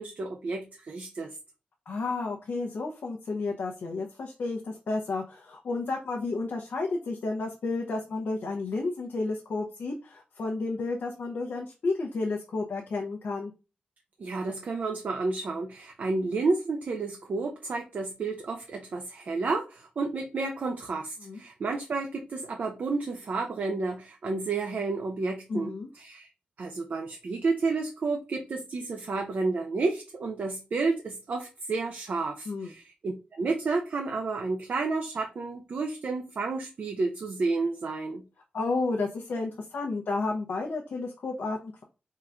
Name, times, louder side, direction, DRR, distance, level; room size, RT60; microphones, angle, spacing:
voice 1, 0.0-1.3 14.2-26.3 26.6-38.2, right 3 dB, 55° right, 0.5 m, -31 dB
voice 2, 1.9-13.5 21.2-21.4 25.5-25.9 32.5-32.7 38.5-41.8, left 3 dB, 75° left, 0.7 m, -31 dB
3.7 x 2.4 x 4.4 m
wide cardioid pair, 160°, 3 cm